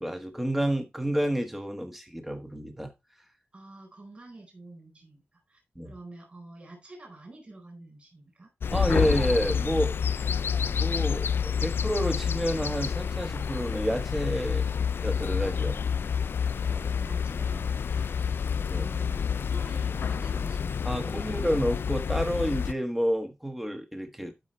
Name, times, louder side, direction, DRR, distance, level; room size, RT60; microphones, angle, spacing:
voice 1, 0.0-2.9 5.7-5.9 8.7-9.9 10.7-15.8 18.7-18.9 20.8-24.3, equal, 5° right, 1.3 m, -29 dB
voice 2, 3.5-8.5 16.6-21.5, right 2 dB, 30° right, 4.1 m, -47 dB
sound 1, 8.6-22.7, left 7 dB, 65° left, 0.4 m, -28 dB
12.0 x 5.6 x 3.2 m
wide cardioid pair, 175°, 4 cm